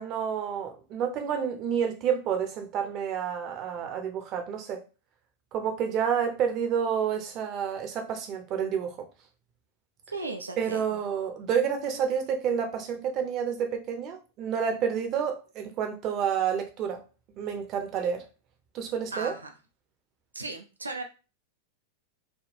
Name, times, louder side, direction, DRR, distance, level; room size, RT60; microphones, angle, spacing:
voice 1, 0.0-4.8 5.5-9.0 10.6-17.0 17.4-18.3 18.7-19.3, right 7 dB, 35° right, 5 dB, 0.6 m, -29 dB
voice 2, 10.1-11.0 19.1-19.5 20.3-21.0, right 3 dB, 80° right, 4 dB, 0.4 m, -36 dB
3.4 x 2.2 x 2.6 m, 0.32 s
figure-of-eight pair, 90°, 0 cm